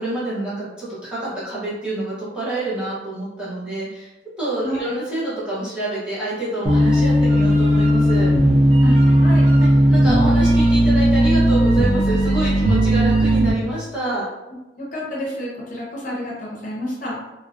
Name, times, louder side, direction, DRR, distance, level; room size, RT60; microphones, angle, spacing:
voice 1, 0.0-4.1 4.4-8.3 9.6-14.2, right 2 dB, 5° right, -11 dB, 0.7 m, -27 dB
voice 2, 4.6-4.9 8.8-9.5 14.8-17.2, left 1 dB, 45° left, -6 dB, 0.7 m, -29 dB
sound 1, 6.6-13.5, equal, 35° right, 0.4 m, -16 dB
2.5 x 2.0 x 2.4 m, 1.0 s
head